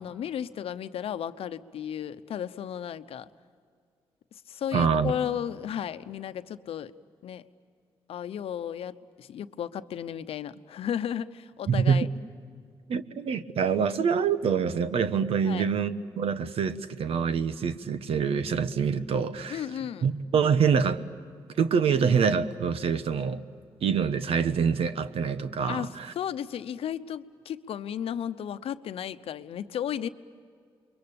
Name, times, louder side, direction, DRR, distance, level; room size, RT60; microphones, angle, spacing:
voice 1, 0.0-3.3 4.5-6.9 7.2-7.4 8.1-12.1 15.4-15.7 19.5-20.1 25.6-30.1, left 9 dB, 80° left, 12 dB, 0.9 m, -34 dB
voice 2, 4.7-5.1 11.7-12.1 12.9-19.6 20.0-21.0 21.6-23.4 23.8-26.1, right 6 dB, 75° right, 11 dB, 1.2 m, -25 dB
29.0 x 23.0 x 8.7 m, 2.2 s
cardioid pair, 60°, 10 cm